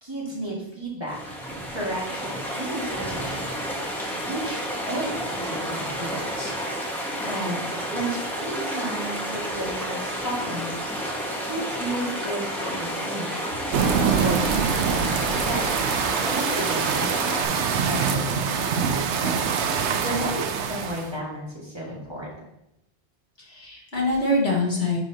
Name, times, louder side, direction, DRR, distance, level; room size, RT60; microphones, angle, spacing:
voice 1, 0.0-1.4 1.7-3.5 4.0-4.6 4.9-6.2 7.2-7.7 7.9-10.7 11.0-13.5 14.2-15.9 16.2-19.6 19.9-22.3, right 1 dB, 25° right, -5 dB, 1.8 m, -33 dB
sound 1, 1.1-17.4, equal, ahead, 1.3 m, -31 dB
sound 2, 13.7-21.1, right 6 dB, 85° right, 0.9 m, -24 dB
voice 2, 23.4-25.0, left 2 dB, 65° left, -3 dB, 1.9 m, -25 dB
9.8 x 4.9 x 2.8 m, 0.85 s
omnidirectional pair, 1.2 m